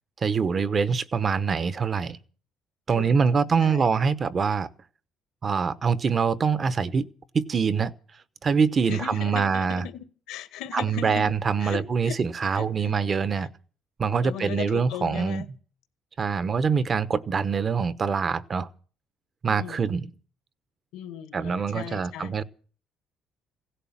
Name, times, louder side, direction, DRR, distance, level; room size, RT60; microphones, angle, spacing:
voice 1, 0.2-2.2 2.9-4.7 5.4-7.1 7.3-7.9 8.4-9.9 10.7-13.5 14.0-15.4 16.2-18.7 19.4-20.1 21.3-22.4, right 5 dB, 30° right, 0.9 m, -24 dB
voice 2, 2.9-4.1 8.9-11.3 11.6-12.2 12.5-12.9 13.3-13.5 14.2-15.5 19.5-19.9 20.9-22.4, left 11 dB, 85° left, 1.9 m, -38 dB
16.5 x 11.5 x 7.3 m
cardioid pair, 125°, 0 cm